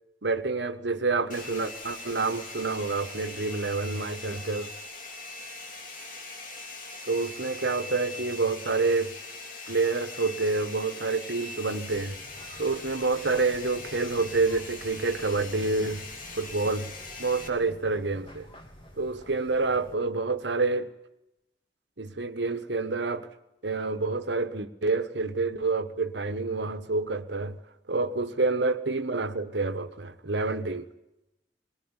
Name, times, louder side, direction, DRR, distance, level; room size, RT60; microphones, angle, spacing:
voice 1, 0.2-4.7 7.1-9.2 9.7-12.2 12.6-16.1 16.4-16.9 17.2-18.5 19.0-20.9 22.0-23.3 23.6-27.6 27.9-30.9, right 3 dB, 75° right, 1.3 m, -28 dB
Domestic sounds home sounds, 1.3-17.5, left 3 dB, 45° left, 3.2 m, -41 dB
sound 1, 11.9-19.9, equal, 30° left, 2.7 m, -50 dB
22.0 x 20.5 x 9.8 m
head